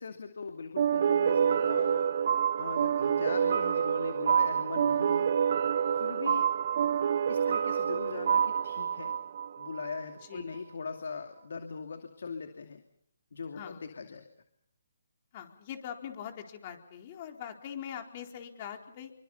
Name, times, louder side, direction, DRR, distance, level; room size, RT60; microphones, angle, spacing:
voice 1, 0.0-2.1 2.6-5.3 5.9-6.5 7.3-9.2 9.6-12.8 13.3-14.3, left 5 dB, 70° left, 6 dB, 2.6 m, -40 dB
sound 1, 0.8-10.0, right 8 dB, 50° right, 0.9 m, -27 dB
voice 2, 13.5-13.8 15.3-19.1, left 9 dB, 35° left, 4 dB, 4.1 m, -42 dB
28.0 x 24.0 x 5.6 m, 0.72 s
hypercardioid pair, 155°, 0 cm